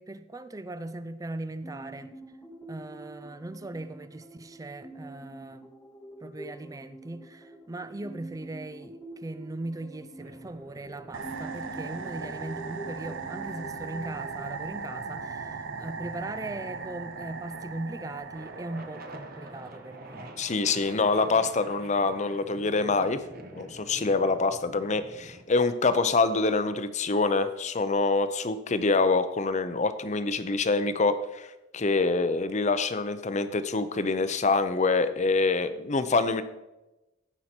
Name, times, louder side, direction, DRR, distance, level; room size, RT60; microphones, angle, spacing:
voice 1, 0.0-2.1 2.7-5.7 6.2-20.6, right 2 dB, 20° right, 0.4 m, -39 dB
sound 1, 1.6-16.0, right 1 dB, 10° left, 0.9 m, -46 dB
sound 2, 10.2-25.4, right 1 dB, 50° right, 1.3 m, -49 dB
sound 3, 11.1-20.0, right 4 dB, 80° right, 0.8 m, -38 dB
voice 2, 20.4-23.2 23.5-31.5 31.7-36.4, left 3 dB, 35° left, 0.7 m, -25 dB
16.0 x 5.7 x 4.4 m
head